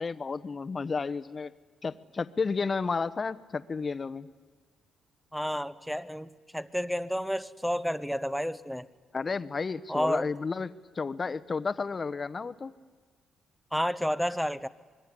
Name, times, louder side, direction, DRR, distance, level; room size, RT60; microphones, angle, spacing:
voice 1, 0.0-1.5 1.8-4.3 9.1-12.7, left 4 dB, 35° left, 14 dB, 1.0 m, -32 dB
voice 2, 5.3-8.9 9.9-10.3 13.7-14.7, equal, ahead, 14 dB, 0.9 m, -30 dB
25.5 x 22.0 x 9.9 m, 1.4 s
cardioid pair, 90°, 0 cm